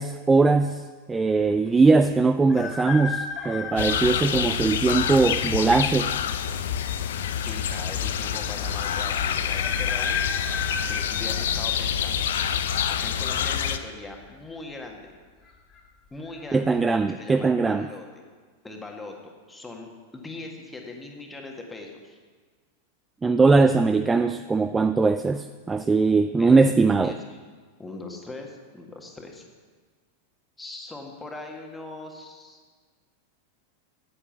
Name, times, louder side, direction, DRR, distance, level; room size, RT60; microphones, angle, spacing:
voice 1, 0.0-6.1 16.5-17.9 23.2-27.1, right 4 dB, 15° right, 11 dB, 0.3 m, -21 dB
sound 1, 2.5-4.5 5.2-5.3 6.4-7.0 7.3-7.4 7.6-7.7 9.5-12.1 12.6-13.0 14.2-14.5 14.8-14.9 15.4-15.8 16.3-16.4, left 4 dB, 25° left, 2.3 m, -34 dB
sound 2, 3.8-13.8, left 8 dB, 60° left, 0.6 m, -27 dB
voice 2, 7.4-10.2 10.5-12.3 12.9-15.1 16.1-16.7 17.1-18.0 18.6-22.2 26.4-26.6 26.9-27.4 27.8-29.4 30.6-32.6, left 2 dB, 10° left, 2 dB, 1.7 m, -40 dB
10.0 x 8.9 x 7.1 m, 1.5 s
figure-of-eight pair, 90°, 0 cm